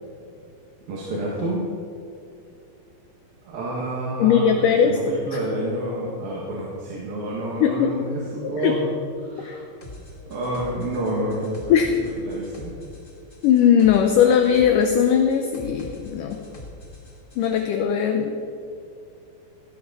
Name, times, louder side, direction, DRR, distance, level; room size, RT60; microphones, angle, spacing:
voice 1, 0.9-1.7 3.5-8.9 9.2-9.6 10.3-12.8, right 1 dB, 75° right, -4 dB, 3.7 m, -29 dB
voice 2, 4.2-5.0 5.3-5.4 7.6-8.0 8.6-8.8 9.4-9.6 11.7-11.9 13.4-16.4 17.4-18.4, left 8 dB, 75° left, 5 dB, 2.1 m, -19 dB
sound 1, 9.8-17.7, left 1 dB, 30° left, 1.0 m, -43 dB
17.5 x 13.5 x 4.2 m, 2.5 s
omnidirectional pair, 4.3 m